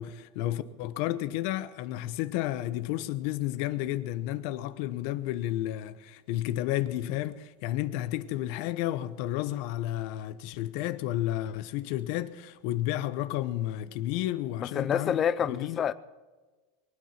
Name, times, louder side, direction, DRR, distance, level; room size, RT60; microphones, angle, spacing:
voice 1, 0.0-15.2 15.5-15.8, left 14 dB, 55° left, 1.0 m, -32 dB
voice 2, 14.6-15.9, left 8 dB, 25° left, 0.6 m, -28 dB
23.5 x 9.6 x 5.9 m
supercardioid pair, 160°, 0 cm